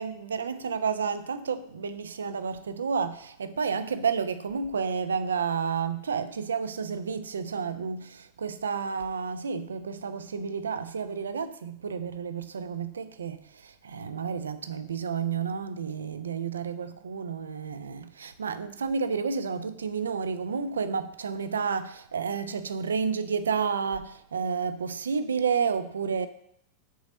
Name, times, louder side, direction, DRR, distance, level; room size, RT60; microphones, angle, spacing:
voice 1, 0.0-26.3, right 6 dB, 70° right, 0.4 m, -31 dB
6.2 x 4.1 x 5.1 m
figure-of-eight pair, 90°, 0 cm